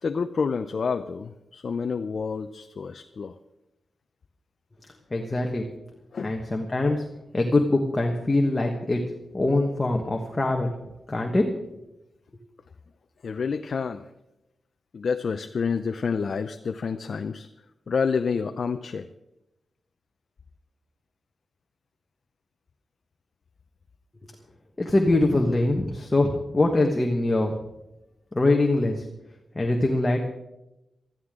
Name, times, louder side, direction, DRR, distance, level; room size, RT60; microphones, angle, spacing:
voice 1, 0.0-3.4 6.1-6.4 13.2-14.1 14.9-17.5 17.9-19.1, left 5 dB, 55° left, 8 dB, 0.6 m, -28 dB
voice 2, 5.1-5.6 6.2-7.0 7.3-9.0 9.3-10.7 11.1-11.5 24.8-27.5 28.3-29.0 29.5-30.2, left 2 dB, 20° left, 1 dB, 1.4 m, -23 dB
21.0 x 13.5 x 3.8 m, 0.93 s
wide cardioid pair, 140°, 0 cm